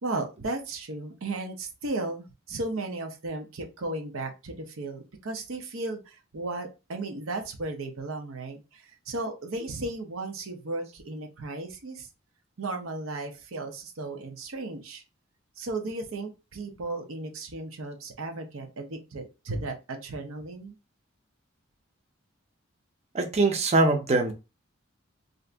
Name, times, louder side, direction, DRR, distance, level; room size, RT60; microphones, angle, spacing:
voice 1, 0.0-12.1 12.6-15.0 15.6-20.7, right 2 dB, 75° right, 0.7 m, -35 dB
voice 2, 23.1-24.3, right 2 dB, 30° right, 0.5 m, -23 dB
2.6 x 2.5 x 3.3 m
head